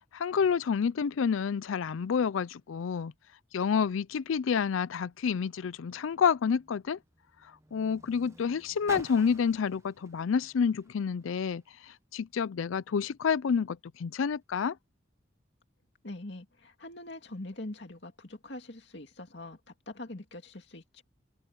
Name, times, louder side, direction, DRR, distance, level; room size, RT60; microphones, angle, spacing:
voice 1, 0.1-3.1 3.5-7.0 7.7-11.6 12.1-14.8, left 6 dB, 85° left, 0.4 m, -29 dB
Car, 5.6-11.9 12.7-12.8, right 2 dB, 15° right, 1.1 m, -52 dB
voice 2, 16.0-19.6 19.9-21.0, left 2 dB, 60° left, 2.4 m, -43 dB
head